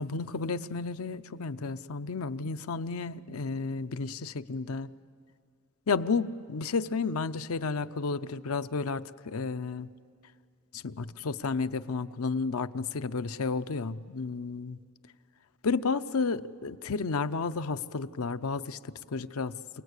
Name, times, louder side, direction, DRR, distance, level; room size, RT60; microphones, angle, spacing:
voice 1, 0.0-4.9 5.9-9.9 10.7-14.8 15.6-19.6, left 4 dB, 80° left, 12 dB, 0.6 m, -32 dB
28.0 x 19.0 x 8.2 m, 2.2 s
head